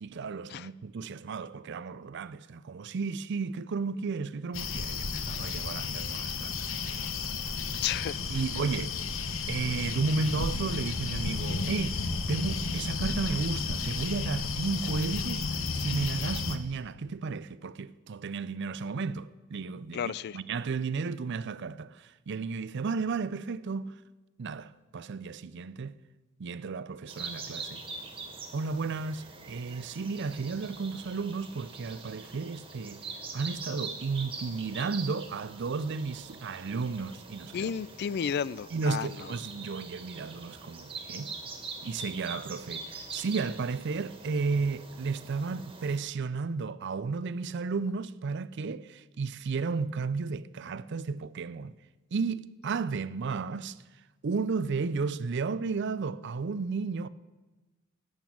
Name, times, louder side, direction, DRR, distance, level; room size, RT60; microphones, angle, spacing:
voice 1, 0.0-7.6 8.3-9.0 9.5-23.9 24.4-25.9 26.4-27.8 28.5-33.0 33.3-37.7 38.7-41.3 41.8-51.7 52.1-53.8 54.2-57.1, right 4 dB, 55° right, 0.5 m, -33 dB
sound 1, 4.5-16.6, left 4 dB, 65° left, 1.0 m, -33 dB
voice 2, 7.8-8.2 19.9-20.4 37.5-39.1, left 8 dB, 50° left, 0.3 m, -32 dB
sound 2, 27.1-46.0, right 4 dB, 25° right, 1.8 m, -43 dB
12.0 x 9.1 x 8.6 m
head